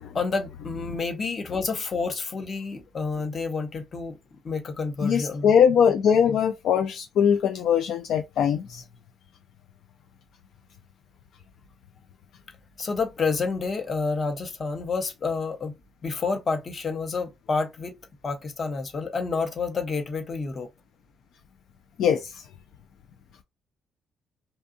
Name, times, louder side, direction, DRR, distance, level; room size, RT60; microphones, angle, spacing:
voice 1, 0.1-4.2 4.4-5.5 6.1-6.4 12.8-15.8 16.0-18.0 18.2-20.7, left 4 dB, 40° left, 0.8 m, -29 dB
voice 2, 5.0-8.8 22.0-22.3, left 8 dB, 75° left, 0.3 m, -21 dB
2.7 x 2.3 x 2.5 m
cardioid pair, 90°, 0 cm